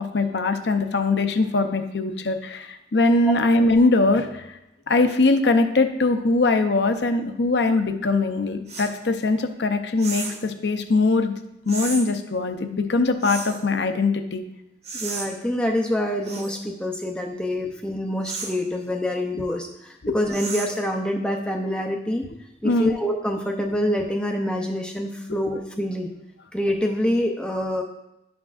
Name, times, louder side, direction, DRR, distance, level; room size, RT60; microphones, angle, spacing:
voice 1, 0.0-4.5 4.9-11.3 11.7-14.4 20.0-20.2 22.6-22.9 25.3-25.4, left 3 dB, 75° left, 7 dB, 0.7 m, -21 dB
sound 1, 8.7-8.9 10.0-10.4 11.7-12.0 13.2-13.6 14.8-15.3 16.2-16.6 18.2-18.6 20.3-20.8, right 4 dB, 35° right, 1.2 m, -33 dB
voice 2, 15.0-22.2 22.6-26.1 26.5-27.8, left 1 dB, 5° left, 2 dB, 0.6 m, -26 dB
11.5 x 6.1 x 2.5 m, 0.88 s
head